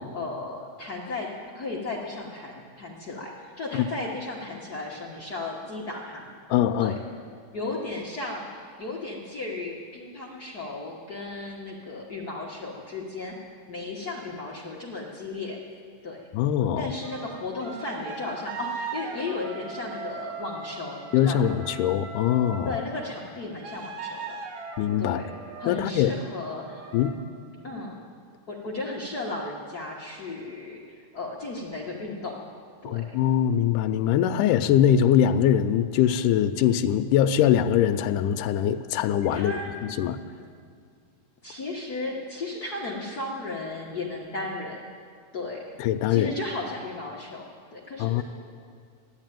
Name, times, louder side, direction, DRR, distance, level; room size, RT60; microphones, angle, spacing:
voice 1, 0.1-1.3 1.5-6.3 6.8-6.9 7.5-15.6 16.0-16.2 16.8-21.4 22.6-24.4 25.0-25.3 25.6-26.9 27.6-28.0 28.5-32.4 32.8-33.0 39.3-39.8 41.4-44.8 45.3-45.6 46.1-48.2, left 2 dB, 55° left, -3 dB, 1.0 m, -35 dB
voice 2, 6.5-7.0 16.3-16.9 21.1-22.8 24.8-25.2 25.7-26.1 26.9-27.1 32.9-39.6 40.0-40.2 45.8-46.4 48.0-48.2, left 10 dB, 85° left, 7 dB, 2.1 m, -22 dB
sound 1, 17.0-22.8 23.6-25.9 26.5-27.1, right 5 dB, 65° right, 2.7 m, -39 dB
14.5 x 11.0 x 9.1 m, 2.2 s
omnidirectional pair, 3.7 m